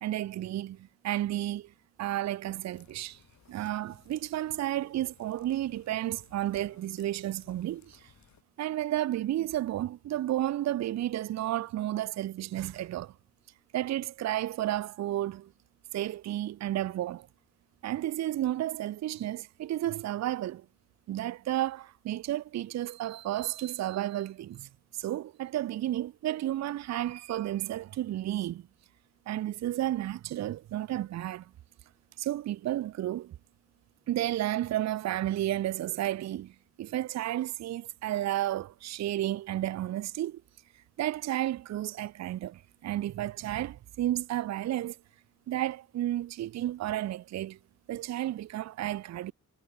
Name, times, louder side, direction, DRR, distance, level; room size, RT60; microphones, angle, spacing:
voice 1, 0.0-1.7 2.0-3.2 3.5-8.1 8.6-13.1 13.7-15.5 15.9-17.3 17.8-20.6 21.1-28.6 29.3-31.5 32.2-33.3 34.1-36.5 36.8-40.4 41.0-45.0 45.5-47.6 47.9-49.3, right 13 dB, 60° right, 0.5 m, -32 dB
sound 1, 2.7-8.4, left 8 dB, 65° left, 3.6 m, -61 dB
wide cardioid pair, 120°, 31 cm